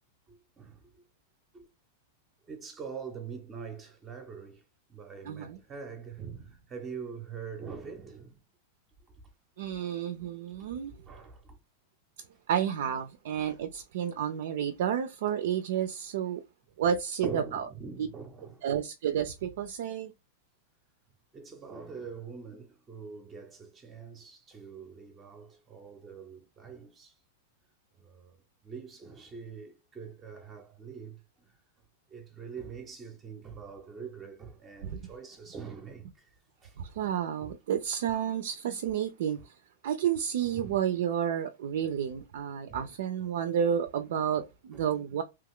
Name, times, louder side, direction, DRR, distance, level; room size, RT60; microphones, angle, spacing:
voice 1, 0.3-1.0 1.5-1.7 2.5-4.6 4.9-8.4 9.1-9.2 11.1-11.6 13.4-13.5 17.2-18.7 21.3-27.1 28.0-28.4 28.6-31.6 32.1-36.3 36.6-36.8 37.4-37.5 39.4-39.5 40.4-40.8 42.7-42.9 44.7-44.8, right 6 dB, 20° right, 0.6 m, -44 dB
voice 2, 5.3-5.6 9.6-10.9 12.5-16.4 16.8-17.7 18.0-18.1 18.6-20.1 34.8-34.9 36.8-39.5 39.8-45.2, right 9 dB, 70° right, 0.4 m, -31 dB
2.9 x 2.3 x 3.5 m
supercardioid pair, 145°, 0 cm